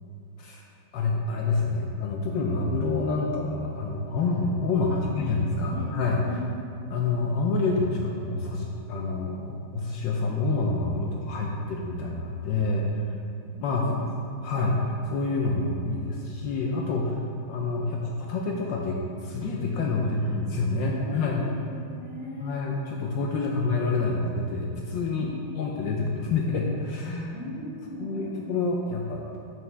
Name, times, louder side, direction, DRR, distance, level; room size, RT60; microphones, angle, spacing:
voice 1, 0.9-6.2 6.9-13.1 13.6-13.9 14.4-14.8 15.0-21.5 22.4-25.3 25.5-27.3 28.0-29.2, left 3 dB, 75° left, -1 dB, 1.2 m, -27 dB
voice 2, 4.7-5.3 5.6-5.9 6.2-6.5 13.4-14.1 14.4-14.7 20.0-20.3 20.8-22.6 25.1-25.5 27.3-28.4, equal, 20° right, -9 dB, 1.0 m, -40 dB
7.2 x 5.8 x 3.3 m, 2.6 s
omnidirectional pair, 2.3 m